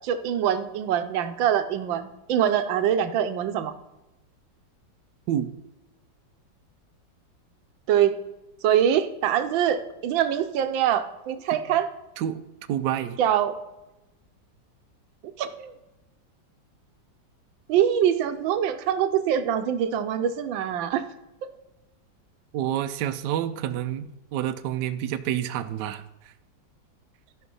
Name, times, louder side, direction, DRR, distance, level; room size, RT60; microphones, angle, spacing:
voice 1, 0.0-3.7 7.9-8.2 8.6-11.9 13.2-13.6 15.4-15.7 17.7-21.0, right 9 dB, 90° right, 9 dB, 1.5 m, -24 dB
voice 2, 12.7-13.2 22.5-26.0, right 11 dB, 70° right, 9 dB, 1.1 m, -28 dB
13.5 x 5.5 x 5.4 m, 1.0 s
omnidirectional pair, 2.0 m